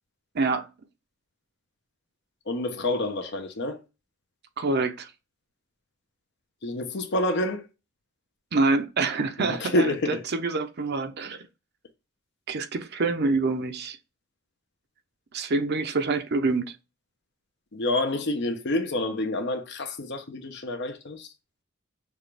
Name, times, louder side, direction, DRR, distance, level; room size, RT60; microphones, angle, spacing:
voice 1, 0.3-0.7 4.6-5.1 8.5-11.4 12.5-14.0 15.3-16.7, right 3 dB, 55° right, 0.7 m, -26 dB
voice 2, 2.5-3.8 6.6-7.6 9.4-10.2 17.7-21.3, left 2 dB, 60° left, 0.9 m, -28 dB
6.5 x 2.5 x 3.3 m
head